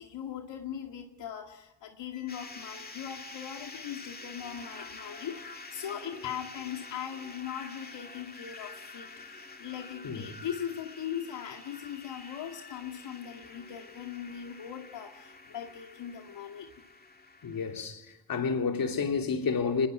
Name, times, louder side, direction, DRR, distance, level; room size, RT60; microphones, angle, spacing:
voice 1, 0.0-16.7, left 9 dB, 75° left, 2.2 m, -40 dB
sound 1, 2.3-17.8, left 3 dB, 20° left, 2.3 m, -47 dB
voice 2, 17.4-19.9, left 5 dB, 50° left, 3.2 m, -30 dB
24.5 x 21.0 x 9.4 m
cardioid pair, 85°, 44 cm